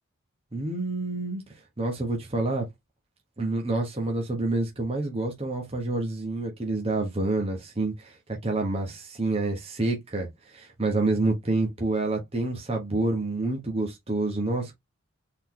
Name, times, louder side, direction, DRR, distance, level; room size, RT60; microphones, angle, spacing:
voice 1, 0.5-1.4 1.8-2.6 3.4-8.1 8.4-14.8, right 2 dB, 30° right, 1.2 m, -28 dB
4.0 x 4.0 x 3.1 m
head